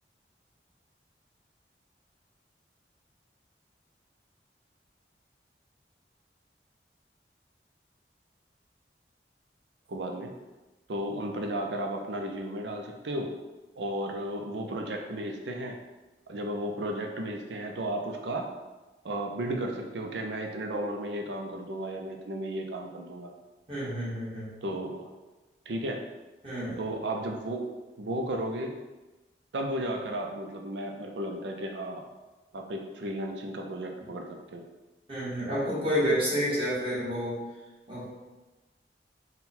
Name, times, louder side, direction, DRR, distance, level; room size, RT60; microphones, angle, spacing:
voice 1, 9.9-10.3 10.9-13.3 13.8-15.8 16.3-18.5 19.0-23.3 24.6-25.1 25.7-26.0 26.8-27.7 28.0-28.8 29.5-32.0 32.5-34.6, right 1 dB, 85° right, 2 dB, 0.5 m, -34 dB
voice 2, 23.7-24.5 26.4-26.8 35.1-37.4 37.9-38.1, equal, 30° right, -8 dB, 1.4 m, -29 dB
3.9 x 2.2 x 4.2 m, 1.1 s
head